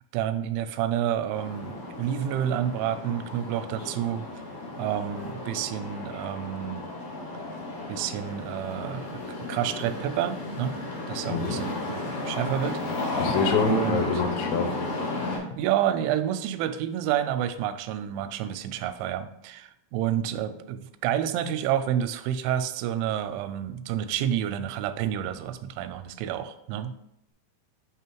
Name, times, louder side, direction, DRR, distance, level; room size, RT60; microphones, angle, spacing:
voice 1, 0.1-4.3 4.8-6.9 7.9-9.1 9.5-10.8 11.1-13.2 13.7-14.1 15.6-26.9, right 10 dB, 90° right, 11 dB, 3.0 m, -29 dB
sound 1, 1.3-15.4, left 2 dB, 70° left, 4.1 m, -33 dB
voice 2, 13.2-14.7, left 5 dB, 85° left, 6 dB, 3.2 m, -26 dB
9.0 x 3.5 x 4.5 m, 0.80 s
omnidirectional pair, 5.2 m